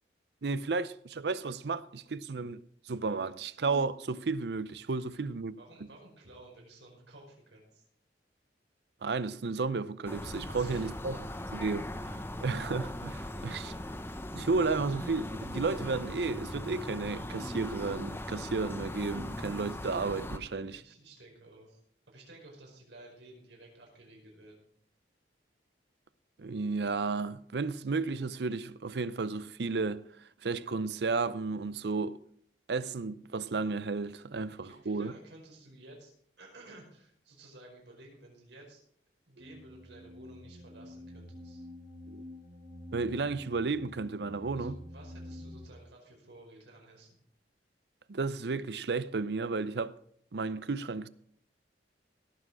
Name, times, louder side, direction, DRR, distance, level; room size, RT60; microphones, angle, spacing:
voice 1, 0.4-2.6 2.9-5.6 9.0-13.7 14.3-20.8 26.4-30.0 30.4-32.2 32.7-35.1 42.1-42.2 42.9-44.8 48.1-49.9 50.3-51.1, right 4 dB, 65° right, 0.5 m, -33 dB
voice 2, 5.1-7.8 10.5-11.0 13.3-13.8 20.5-21.8 22.1-24.7 34.6-36.1 36.4-38.8 39.3-41.7 44.5-47.2, right 2 dB, 85° right, 5.0 m, -54 dB
sound 1, 10.0-20.4, left 1 dB, 15° left, 0.8 m, -39 dB
sound 2, 39.4-45.7, left 1 dB, 30° right, 1.7 m, -48 dB
17.5 x 7.5 x 4.8 m
head